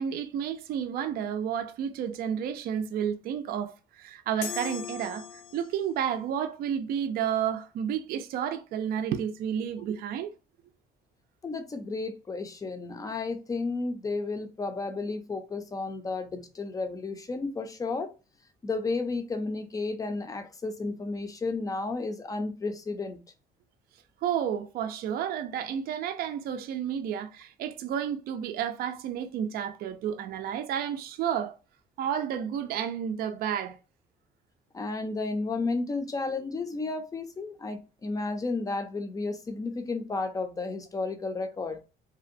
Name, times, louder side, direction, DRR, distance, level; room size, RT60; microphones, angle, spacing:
voice 1, 0.0-5.3 5.5-10.3 24.2-31.6 32.0-33.8, right 9 dB, 60° right, 0.4 m, -31 dB
sound 1, 4.4-5.9, left 8 dB, 85° left, 0.5 m, -38 dB
voice 2, 11.4-18.1 18.6-23.2 34.7-41.8, left 3 dB, 20° left, 0.5 m, -32 dB
2.7 x 2.1 x 2.5 m
cardioid pair, 110°, 17 cm